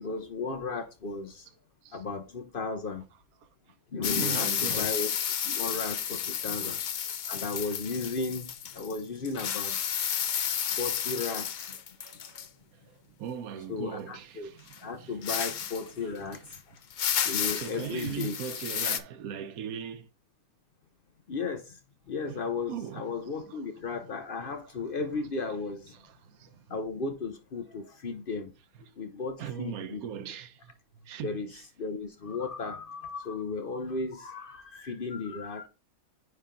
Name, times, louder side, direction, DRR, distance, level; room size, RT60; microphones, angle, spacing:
voice 1, 0.0-1.4 1.9-3.0 3.9-5.1 5.4-6.8 7.3-9.8 10.7-11.8 13.7-14.5 14.8-16.4 17.2-18.3 21.3-21.6 22.1-25.8 26.7-28.5 29.0-30.0 31.2-35.7, left 4 dB, 50° left, 0.8 m, -35 dB
sound 1, 4.0-9.0 9.2-12.5 14.7-14.8 15.2-15.9 16.3-16.6 16.9-19.0, left 8 dB, 85° left, 0.4 m, -32 dB
voice 2, 4.0-5.1 6.4-6.9 11.6-11.7 12.0-16.5 17.5-20.1 22.3-24.1 24.6-25.3 26.0-26.7 28.7-28.8 29.4-30.7 31.0-31.7, right 9 dB, 90° right, 1.1 m, -41 dB
9.6 x 3.4 x 3.7 m
omnidirectional pair, 1.5 m